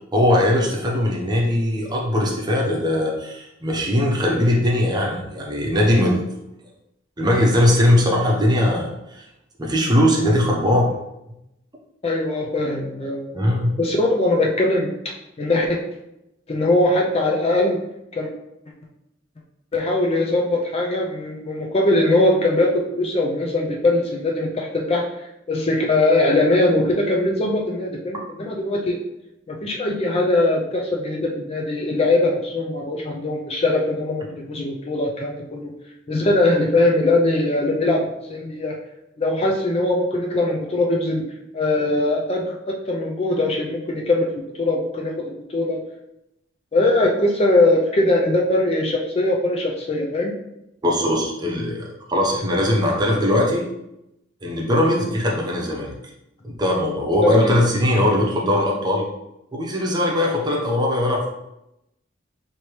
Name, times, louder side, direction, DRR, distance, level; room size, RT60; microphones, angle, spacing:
voice 1, 0.1-6.2 7.2-9.2 9.6-10.9 13.3-13.8 50.8-53.6 54.4-55.9 56.4-59.0 59.5-61.3, left 1 dB, 20° right, -1 dB, 0.7 m, -20 dB
voice 2, 12.0-13.4 13.8-15.8 16.5-17.8 18.1-18.3 19.7-25.0 25.5-29.0 29.5-35.7 36.1-38.7 39.2-41.2 41.5-44.3 44.6-45.8 46.7-50.3 57.2-57.6, left 2 dB, 30° left, 1 dB, 0.4 m, -21 dB
4.7 x 2.8 x 3.1 m, 0.87 s
head